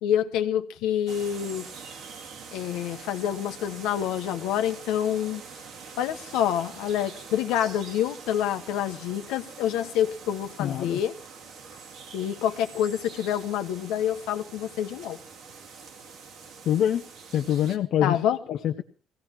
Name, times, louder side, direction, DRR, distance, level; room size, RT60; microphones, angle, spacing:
voice 1, 0.0-1.7 2.5-5.4 6.0-11.1 12.1-15.2 18.0-18.4, left 10 dB, 85° left, 1.1 m, -27 dB
sound 1, 1.1-17.8, right 5 dB, 65° right, 2.0 m, -44 dB
voice 2, 10.6-11.0 16.7-17.0 17.3-18.2 18.5-18.8, left 10 dB, 60° left, 0.8 m, -24 dB
20.5 x 16.5 x 3.0 m
cardioid pair, 110°, 0 cm